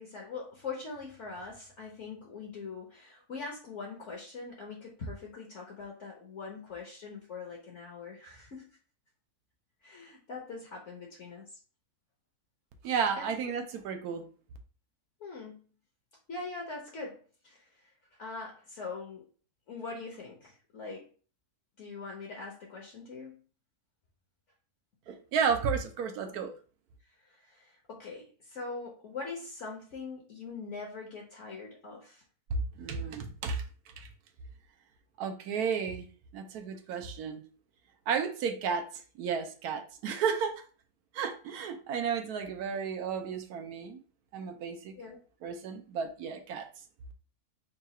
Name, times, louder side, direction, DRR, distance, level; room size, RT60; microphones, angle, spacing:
voice 1, 0.0-8.8 9.8-11.6 13.2-13.3 15.2-15.6 16.3-17.8 18.1-19.2 19.7-21.1 21.8-23.4 26.2-26.4 27.2-32.2 45.0-45.2, left 4 dB, 55° left, -1 dB, 1.0 m, -42 dB
voice 2, 12.8-14.2 25.1-26.5 32.5-33.6 34.0-34.1 35.2-36.1 36.3-37.4 38.1-38.8 39.2-40.5 41.1-44.0 44.3-44.9 45.4-46.7, right 6 dB, 80° right, 5 dB, 1.2 m, -32 dB
3.8 x 2.3 x 4.1 m, 0.40 s
omnidirectional pair, 1.6 m